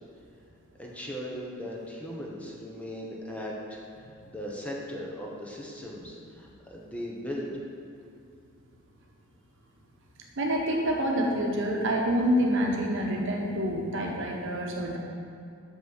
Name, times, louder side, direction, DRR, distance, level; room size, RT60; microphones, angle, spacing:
voice 1, 0.8-7.5, equal, 5° left, -2 dB, 1.0 m, -38 dB
voice 2, 10.4-15.0, equal, 60° right, 0 dB, 1.1 m, -27 dB
6.7 x 6.0 x 6.3 m, 2.6 s
head